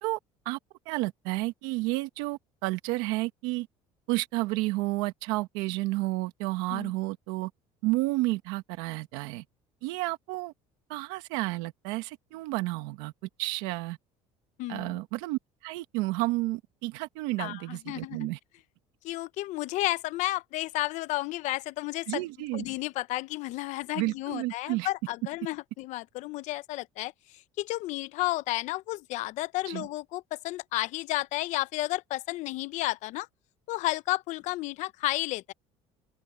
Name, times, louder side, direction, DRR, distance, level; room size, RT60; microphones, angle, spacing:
voice 1, 0.8-3.7 4.1-7.5 7.8-9.4 9.8-10.5 10.9-13.1 13.4-14.0 14.7-18.4 22.1-22.6 23.9-24.9 29.6-29.9, right 21 dB, 90° right, 1.8 m, -31 dB
voice 2, 14.6-15.0 17.4-18.3 19.0-22.2 22.5-33.3 33.7-35.5, left 18 dB, 70° left, 0.8 m, -32 dB
open air
cardioid pair, 120°, 13 cm